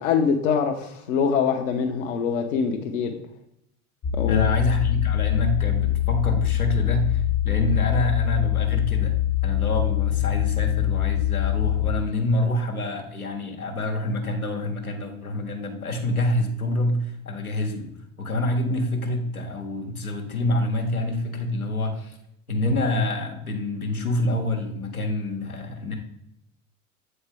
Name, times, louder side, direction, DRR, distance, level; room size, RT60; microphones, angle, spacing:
voice 1, 0.0-3.2 4.1-4.5, left 6 dB, 60° left, 3 dB, 0.8 m, -24 dB
sound 1, 4.0-11.9, left 13 dB, 20° left, 0.4 m, -23 dB
voice 2, 4.3-9.1 9.4-17.9 18.2-22.2 22.5-26.0, left 1 dB, 85° left, 1 dB, 1.2 m, -27 dB
7.9 x 4.4 x 3.4 m, 0.76 s
figure-of-eight pair, 75°, 42 cm